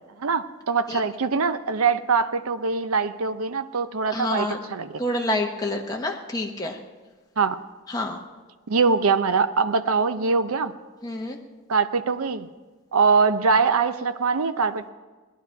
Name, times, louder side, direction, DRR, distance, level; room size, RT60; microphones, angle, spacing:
voice 1, 0.2-5.0 7.4-7.6 8.7-10.7 11.7-12.5 12.9-14.8, right 5 dB, 75° right, 12 dB, 0.6 m, -23 dB
voice 2, 4.1-4.6 5.0-6.8 7.9-8.2 11.0-11.4, left 1 dB, 15° left, 1 dB, 1.0 m, -28 dB
18.5 x 11.0 x 4.6 m, 1.3 s
head